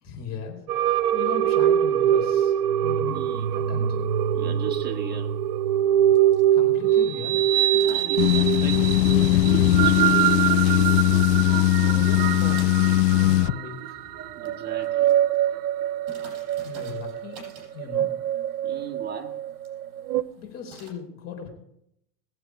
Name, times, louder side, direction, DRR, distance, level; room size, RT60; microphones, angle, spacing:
voice 1, 0.0-2.5 2.8-3.2 3.5-4.0 6.5-7.4 11.8-12.7 13.1-14.1 16.6-17.4 17.7-18.1 20.4-21.5, left 7 dB, 30° left, 2 dB, 4.1 m, -37 dB
sound 1, 0.7-20.2, right 11 dB, 75° right, 0.8 m, -24 dB
voice 2, 3.1-3.6 4.3-5.4 7.8-10.2 14.4-15.2 18.6-19.4, right 7 dB, 20° right, 2 dB, 1.6 m, -38 dB
sound 2, 3.1-20.9, right 2 dB, 45° right, 6.2 m, -52 dB
sound 3, 8.2-13.5, left 17 dB, 80° left, 0.5 m, -20 dB
21.0 x 7.8 x 4.8 m, 0.75 s
supercardioid pair, 140°, 48 cm